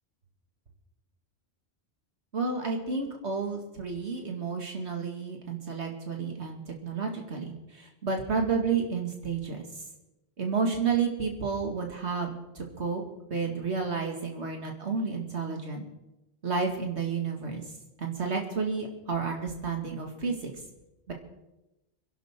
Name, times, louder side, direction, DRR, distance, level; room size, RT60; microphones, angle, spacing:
voice 1, 2.3-9.6 10.4-13.0 13.3-15.9 16.4-17.6 18.0-20.5 21.1-21.2, right 5 dB, 80° right, 2 dB, 2.5 m, -31 dB
26.5 x 11.0 x 3.8 m, 0.96 s
omnidirectional pair, 1.1 m